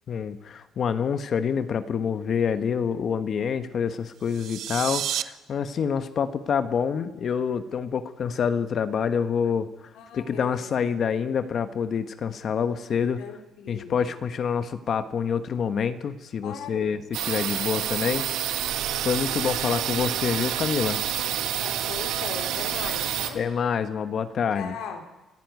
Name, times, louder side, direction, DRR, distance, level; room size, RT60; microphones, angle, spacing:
voice 1, 0.1-9.7 10.1-13.2 13.7-18.2 19.0-21.0 23.3-24.7, left 7 dB, 50° left, 10 dB, 1.3 m, -27 dB
voice 2, 2.5-2.8 9.9-10.7 13.2-14.1 16.4-17.0 19.6-20.4 21.6-23.4 24.5-25.0, left 6 dB, 80° left, 4 dB, 3.4 m, -39 dB
sound 1, 4.2-5.2, right 11 dB, 65° right, 0.9 m, -30 dB
sound 2, 17.1-23.3, right 11 dB, 85° right, 2.0 m, -28 dB
26.5 x 15.5 x 9.6 m, 1.1 s
cardioid pair, 125°, 0 cm